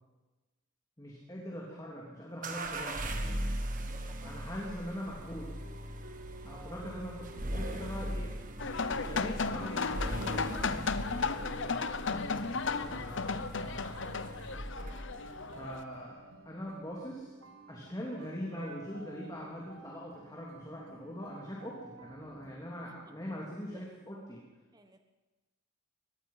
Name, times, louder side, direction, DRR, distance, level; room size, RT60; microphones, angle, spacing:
voice 1, 1.0-3.1 4.2-5.5 6.4-8.3 8.6-14.2 15.5-17.3 17.7-24.4, equal, 20° left, -3 dB, 3.3 m, -43 dB
sound 1, 2.4-15.3, right 1 dB, 40° right, 1.7 m, -39 dB
voice 2, 3.8-4.3 6.4-6.8 11.6-12.0 14.9-15.2 22.8-23.1 23.7-23.9 24.7-25.0, right 2 dB, 20° right, 6 dB, 1.2 m, -57 dB
sound 2, 5.6-22.6, right 2 dB, 75° right, 1.9 m, -52 dB
sound 3, 8.6-15.8, left 4 dB, 60° left, 0.9 m, -35 dB
23.5 x 19.5 x 5.7 m, 1.2 s
head